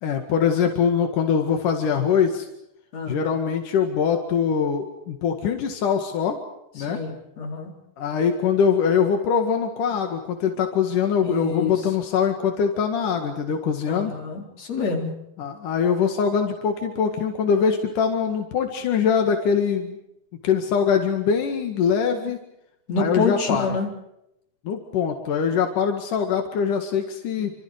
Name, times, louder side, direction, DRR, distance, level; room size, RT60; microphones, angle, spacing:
voice 1, 0.0-2.5 3.1-6.4 6.7-7.0 8.0-14.1 15.4-20.0 20.4-22.4 23.0-23.7 24.6-27.5, left 7 dB, 90° left, 4 dB, 3.5 m, -23 dB
voice 2, 6.8-7.7 11.2-11.9 13.9-15.1 22.9-23.9, left 3 dB, 55° left, 1 dB, 5.3 m, -27 dB
28.0 x 26.5 x 4.9 m, 0.81 s
omnidirectional pair, 3.6 m